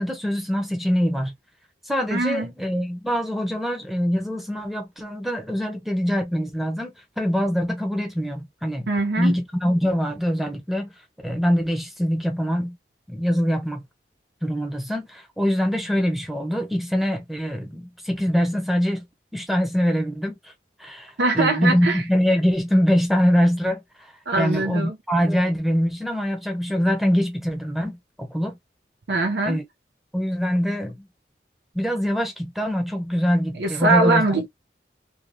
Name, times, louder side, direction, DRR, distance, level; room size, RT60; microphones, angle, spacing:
voice 1, 0.0-1.3 1.9-8.9 9.2-10.9 11.2-12.8 13.1-13.8 14.4-19.0 19.3-20.3 20.8-28.6 29.4-29.6 30.1-31.1 31.7-34.4, equal, ahead, 0.7 m, -24 dB
voice 2, 2.1-2.5 8.9-9.4 21.2-22.0 24.3-25.0 29.1-29.6 33.6-34.5, right 3 dB, 85° right, 0.6 m, -22 dB
2.9 x 2.7 x 3.1 m
head